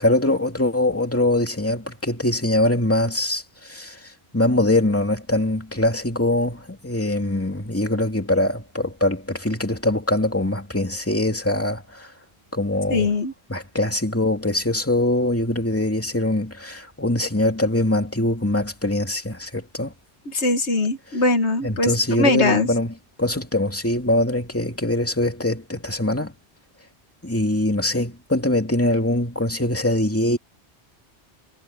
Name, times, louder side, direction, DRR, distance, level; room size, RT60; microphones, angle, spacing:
voice 1, 0.0-12.1 12.5-13.1 13.5-19.9 21.1-21.2 21.6-26.3 27.2-30.4, left 1 dB, 10° left, 2.5 m, -23 dB
voice 2, 12.9-13.3 20.3-21.9 22.2-22.7, left 2 dB, 85° left, 1.9 m, -21 dB
omnidirectional pair, 1.1 m